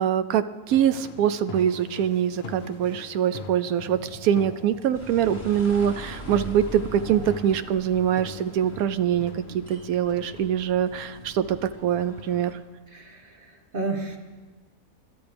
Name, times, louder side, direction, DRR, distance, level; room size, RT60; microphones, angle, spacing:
voice 1, 0.0-12.6, right 9 dB, 90° right, 12 dB, 1.1 m, -24 dB
sound 1, 0.7-11.2, left 4 dB, 50° left, 1.1 m, -43 dB
sound 2, 1.6-8.9, equal, 55° right, 2.9 m, -48 dB
sound 3, 4.9-12.5, left 1 dB, 25° left, 3.7 m, -42 dB
voice 2, 12.9-14.2, right 3 dB, 40° right, 2 dB, 1.7 m, -32 dB
25.5 x 12.0 x 3.4 m, 1.3 s
omnidirectional pair, 1.5 m